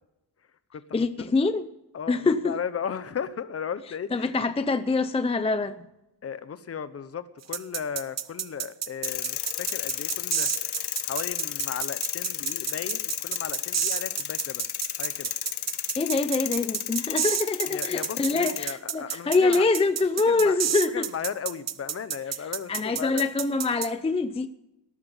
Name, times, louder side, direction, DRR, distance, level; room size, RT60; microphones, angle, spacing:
voice 1, 0.9-1.7 2.1-2.6 4.1-5.9 16.0-21.1 22.7-24.5, left 3 dB, 15° left, 0.5 m, -25 dB
voice 2, 1.9-4.3 6.2-10.5 11.0-14.7 15.0-15.3 17.7-19.6 20.3-20.6 20.9-23.2, left 7 dB, 35° left, 1.0 m, -35 dB
sound 1, 7.5-23.9, right 9 dB, 40° right, 0.8 m, -30 dB
sound 2, 9.0-18.6, left 12 dB, 75° left, 1.1 m, -33 dB
17.5 x 13.0 x 5.6 m
cardioid pair, 155°, 40 cm